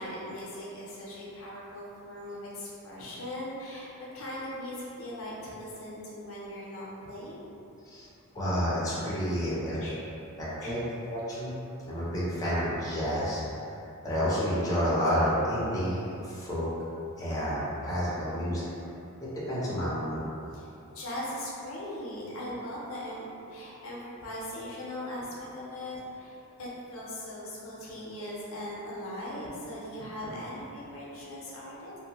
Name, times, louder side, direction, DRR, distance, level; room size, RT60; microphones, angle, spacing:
voice 1, 0.0-7.4 9.7-10.3 10.6-10.9 18.2-18.6 20.5-31.9, left 1 dB, 65° left, -6 dB, 0.6 m, -40 dB
voice 2, 8.3-9.8 10.4-10.8 11.1-11.5 11.9-13.4 13.7-13.8 14.0-16.7 17.2-18.7 19.2-20.2, equal, 15° left, -9 dB, 0.5 m, -30 dB
2.7 x 2.1 x 2.8 m, 2.8 s
head